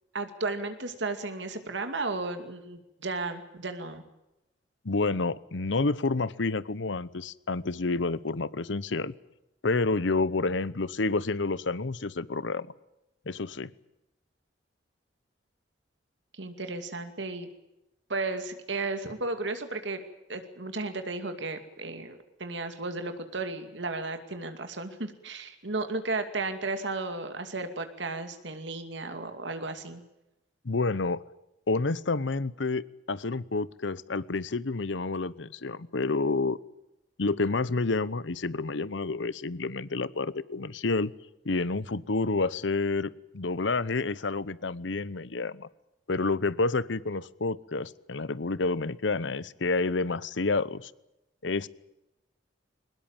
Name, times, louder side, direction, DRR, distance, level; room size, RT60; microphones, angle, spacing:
voice 1, 0.1-4.0 16.4-17.5 18.1-20.0 20.3-30.0, right 3 dB, 70° right, 7 dB, 2.5 m, -34 dB
voice 2, 4.8-9.1 9.6-12.7 13.3-13.7 30.6-31.3 31.7-36.6 37.2-41.1 41.4-45.7 46.1-50.9 51.4-51.7, left 3 dB, 75° left, 19 dB, 0.9 m, -29 dB
22.5 x 20.5 x 9.0 m, 0.93 s
head